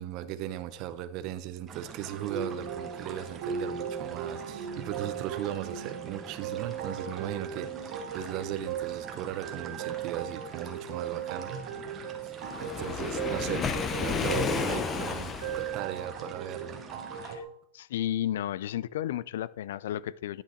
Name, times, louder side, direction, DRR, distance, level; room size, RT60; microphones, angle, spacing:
voice 1, 0.0-11.6 12.0-12.3 12.6-17.3, right 12 dB, 45° right, 0.7 m, -38 dB
sound 1, 1.7-17.4, right 6 dB, 25° right, 1.2 m, -46 dB
sound 2, 2.1-17.4, right 7 dB, 65° right, 2.6 m, -37 dB
Waves surf, 12.4-15.8, left 6 dB, 20° left, 0.7 m, -32 dB
voice 2, 17.7-20.4, left 12 dB, 85° left, 0.3 m, -33 dB
10.0 x 5.7 x 4.4 m
supercardioid pair, 150°, 0 cm